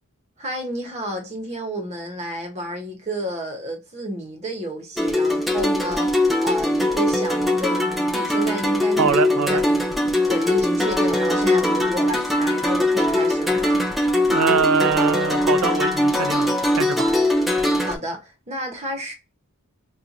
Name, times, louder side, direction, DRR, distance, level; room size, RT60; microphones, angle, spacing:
voice 1, 0.4-13.8 17.8-19.1, right 1 dB, 30° right, 0.9 m, -31 dB
sound 1, 5.0-18.0, left 1 dB, ahead, 0.4 m, -21 dB
voice 2, 9.0-9.6 14.3-16.5 16.8-17.1, right 6 dB, 70° right, 0.4 m, -23 dB
4.4 x 2.3 x 2.6 m
head